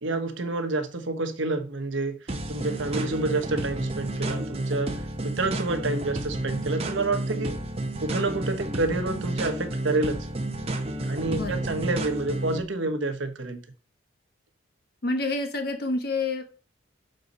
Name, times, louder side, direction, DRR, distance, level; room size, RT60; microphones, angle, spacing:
voice 1, 0.0-7.6 8.0-10.3 11.1-13.6, right 2 dB, 70° right, 1.1 m, -28 dB
sound 1, 2.3-12.6, right 1 dB, 30° right, 0.8 m, -31 dB
voice 2, 11.3-11.7 15.0-16.4, left 2 dB, 50° left, 1.0 m, -28 dB
6.6 x 4.1 x 5.3 m
head